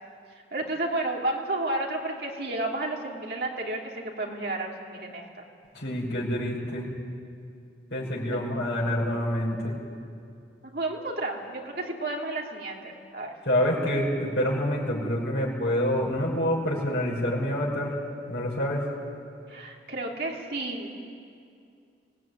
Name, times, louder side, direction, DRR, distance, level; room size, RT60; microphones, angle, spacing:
voice 1, 0.5-5.3 8.3-8.5 10.7-13.3 19.5-20.9, right 2 dB, 55° right, -1 dB, 3.0 m, -32 dB
voice 2, 5.8-6.9 7.9-9.7 13.5-17.9 18.3-18.8, equal, 70° left, -4 dB, 5.6 m, -27 dB
24.0 x 17.5 x 9.5 m, 2.4 s
head